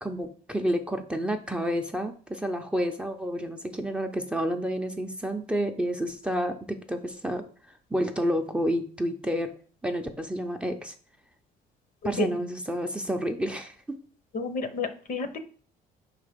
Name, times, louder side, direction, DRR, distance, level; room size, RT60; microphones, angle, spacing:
voice 1, 0.0-7.4 7.9-9.5 9.8-10.9 12.0-14.0, equal, 5° right, 4 dB, 0.6 m, -29 dB
voice 2, 14.3-15.4, left 3 dB, 55° left, 10 dB, 0.9 m, -30 dB
5.0 x 4.0 x 5.1 m, 0.43 s
cardioid pair, 110°, 17 cm